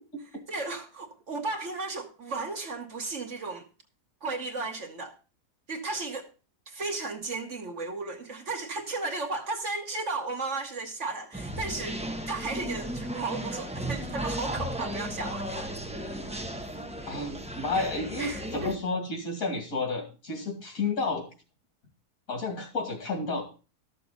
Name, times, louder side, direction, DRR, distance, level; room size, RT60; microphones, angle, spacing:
voice 1, 0.5-3.7 4.2-5.2 5.7-6.3 6.7-12.0 12.3-15.7 16.0-16.2 17.7-17.8 18.2-18.7, right 3 dB, 50° right, 1.3 m, -34 dB
sound 1, 11.3-18.8, equal, 5° right, 0.5 m, -35 dB
voice 2, 17.1-21.3 22.3-23.4, left 3 dB, 60° left, 2.8 m, -31 dB
13.0 x 6.9 x 4.0 m
omnidirectional pair, 1.7 m